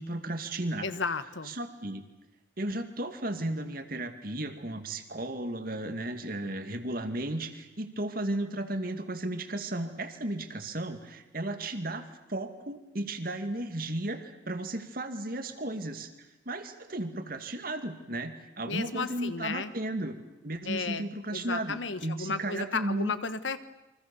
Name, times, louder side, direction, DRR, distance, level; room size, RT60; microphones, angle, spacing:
voice 1, 0.0-0.9 1.4-2.1 2.6-20.2 20.4-23.1, right 1 dB, 50° right, 7 dB, 2.3 m, -34 dB
voice 2, 0.8-1.5 18.7-19.7 20.7-23.6, left 4 dB, 85° left, 12 dB, 1.5 m, -34 dB
29.0 x 24.5 x 7.1 m, 0.96 s
head